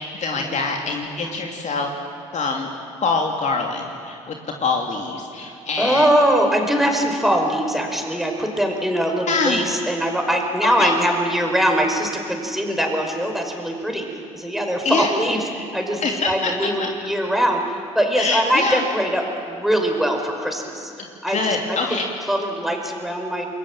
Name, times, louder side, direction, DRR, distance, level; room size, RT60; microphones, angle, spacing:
voice 1, 0.2-1.9 2.3-2.7 3.0-4.4 4.6-6.1 9.3-9.7 10.8-10.9 14.8-15.1 16.0-16.5 16.8-16.9 18.2-18.8 21.3-22.1, left 4 dB, 40° left, 1 dB, 2.7 m, -24 dB
voice 2, 5.8-23.5, equal, ahead, 2 dB, 5.3 m, -22 dB
29.5 x 21.5 x 7.5 m, 2.4 s
hypercardioid pair, 55°, 18 cm